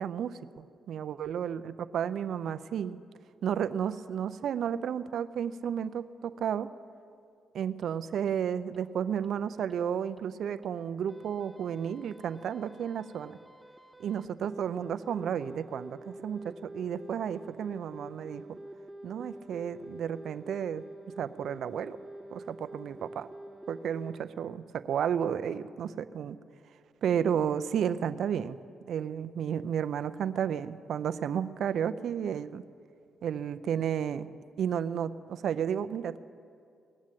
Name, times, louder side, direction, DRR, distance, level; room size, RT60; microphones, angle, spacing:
voice 1, 0.0-3.0 3.4-6.7 7.5-13.4 14.0-18.6 19.0-20.8 21.2-22.0 22.3-23.3 23.7-26.4 27.0-28.6 28.9-32.6 33.2-34.3 34.6-36.2, right 8 dB, 70° right, 12 dB, 0.4 m, -32 dB
sound 1, 7.8-7.9 8.3-8.4 8.7-8.8 9.2-9.3 9.7-9.8 10.2-10.3 10.6-10.7 11.1-24.2, right 1 dB, 10° right, 0.9 m, -47 dB
19.0 x 7.3 x 9.0 m, 2.3 s
supercardioid pair, 50°, 0 cm